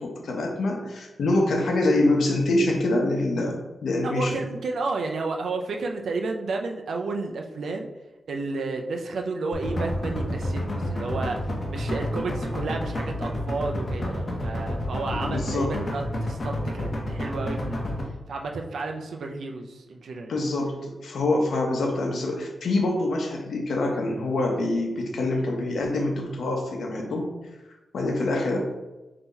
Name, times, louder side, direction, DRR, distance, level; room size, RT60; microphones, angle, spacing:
voice 1, 0.0-4.4 15.1-15.8 20.3-27.3 27.9-28.6, left 2 dB, 85° left, 1 dB, 0.8 m, -25 dB
voice 2, 4.0-7.9 8.3-11.4 11.7-17.8 18.3-20.3, right 3 dB, 85° right, 3 dB, 0.5 m, -31 dB
sound 1, 9.5-18.0, left 1 dB, 35° left, 0.9 m, -29 dB
3.8 x 2.8 x 4.0 m, 1.1 s
wide cardioid pair, 115°, 0 cm